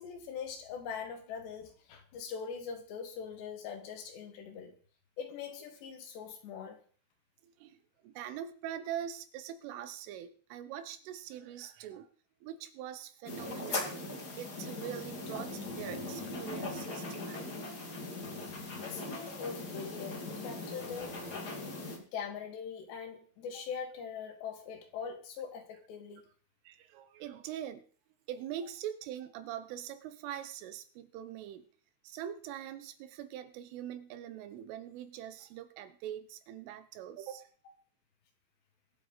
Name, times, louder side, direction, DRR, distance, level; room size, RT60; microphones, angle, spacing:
voice 1, 0.0-4.7 5.2-6.8 18.8-21.1 22.0-26.2, left 6 dB, 65° left, 5 dB, 3.8 m, -42 dB
voice 2, 7.4-12.1 12.4-17.5 26.7-27.8 28.3-31.7 32.0-37.5, right 10 dB, 85° right, 11 dB, 3.6 m, -43 dB
sound 1, 13.2-22.0, left 2 dB, 45° left, 1.2 m, -40 dB
22.5 x 8.2 x 4.0 m, 0.43 s
omnidirectional pair, 5.6 m